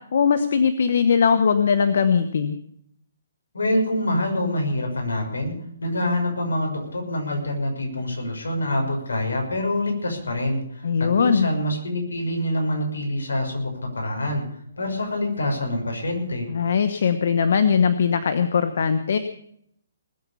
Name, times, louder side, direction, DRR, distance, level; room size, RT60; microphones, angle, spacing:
voice 1, 0.1-2.6 10.8-11.5 16.5-19.2, left 6 dB, 60° left, 10 dB, 1.1 m, -20 dB
voice 2, 3.5-5.5 5.8-14.4 14.8-16.5, left 1 dB, 85° left, 2 dB, 6.3 m, -26 dB
20.5 x 8.3 x 7.1 m, 0.70 s
hypercardioid pair, 145°, 0 cm